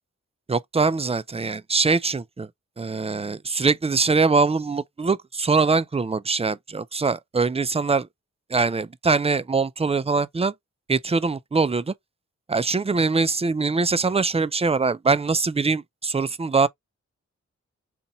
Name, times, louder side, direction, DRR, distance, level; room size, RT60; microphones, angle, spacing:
voice 1, 0.5-2.5 2.8-8.1 8.5-10.5 10.9-11.9 12.5-16.7, right 4 dB, 20° right, 0.5 m, -23 dB
4.2 x 2.4 x 4.1 m
cardioid pair, 45°, 30 cm